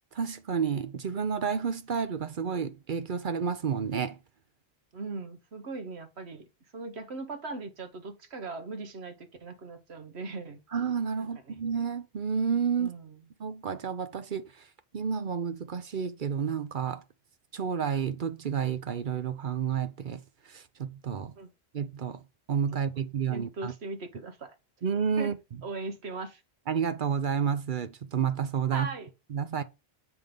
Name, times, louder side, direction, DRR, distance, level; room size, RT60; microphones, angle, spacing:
voice 1, 0.1-4.2 10.7-12.9 13.4-14.5 14.9-17.0 17.5-20.2 20.5-21.3 21.7-22.2 22.5-23.7 24.8-25.3 26.7-28.9 29.3-29.6, right 7 dB, 55° right, 0.8 m, -30 dB
voice 2, 4.9-10.6 11.2-11.6 12.8-13.2 21.4-21.5 23.3-24.6 25.2-25.3 25.6-26.4 28.7-29.1, right 3 dB, 80° right, 1.5 m, -39 dB
7.8 x 3.6 x 5.2 m
omnidirectional pair, 1.1 m